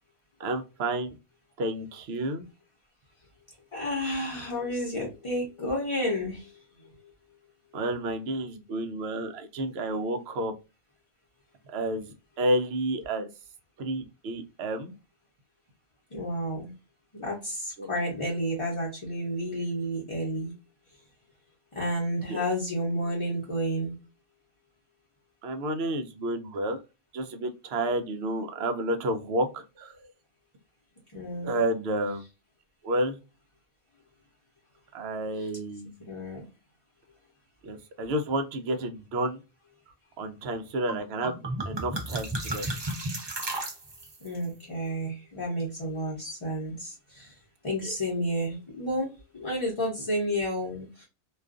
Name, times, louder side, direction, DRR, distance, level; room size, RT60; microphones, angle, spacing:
voice 1, 0.4-1.1 1.6-2.4 7.7-10.5 11.7-13.3 13.8-14.9 17.8-17.9 22.3-22.4 25.4-26.8 27.1-30.0 31.4-32.2 32.8-33.2 34.9-35.9 37.6-39.4 40.2-41.4 41.7-42.7 47.8-47.9, right 1 dB, 75° right, 6 dB, 0.8 m, -30 dB
voice 2, 3.7-6.6 16.1-16.7 17.1-20.5 21.7-24.0 31.1-31.6 35.4-35.5 36.1-36.4 44.2-47.3 47.6-51.1, equal, 30° left, -3 dB, 0.8 m, -31 dB
sound 1, 40.9-41.0 41.2-44.3, right 1 dB, 35° right, 0.5 m, -33 dB
2.4 x 2.3 x 2.3 m, 0.29 s
omnidirectional pair, 1.1 m